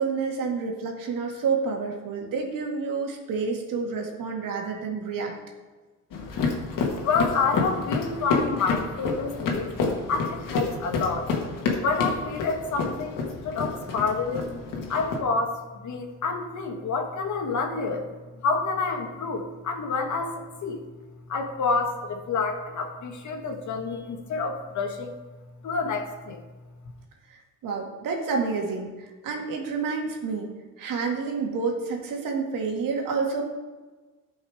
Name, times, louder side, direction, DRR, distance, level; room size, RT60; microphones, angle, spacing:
voice 1, 0.0-5.3 27.3-30.5 30.8-33.4, right 5 dB, 85° right, 1 dB, 2.0 m, -29 dB
sound 1, 6.1-15.2, left 4 dB, 85° left, 1.8 m, -29 dB
voice 2, 7.0-14.5 14.9-18.1 18.4-20.8 21.3-25.1 25.6-26.4, left 4 dB, 60° left, 4 dB, 1.6 m, -28 dB
14.5 x 5.6 x 4.9 m, 1.3 s
cardioid pair, 130°, 32 cm